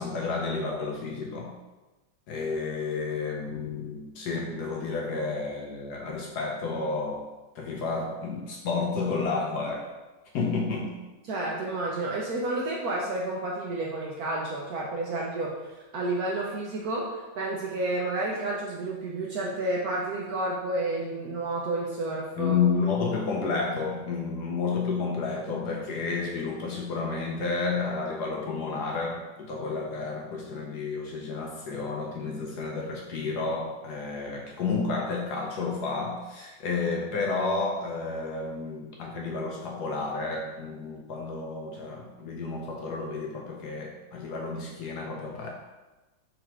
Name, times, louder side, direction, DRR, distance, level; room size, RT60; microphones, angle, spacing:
voice 1, 0.0-1.6 2.3-7.3 7.5-9.9 10.3-11.0 22.4-45.5, left 4 dB, 70° left, -1 dB, 1.1 m, -31 dB
voice 2, 11.2-15.5 15.9-22.6, right 2 dB, 70° right, -3 dB, 0.9 m, -30 dB
3.9 x 2.9 x 4.4 m, 1.1 s
omnidirectional pair, 2.0 m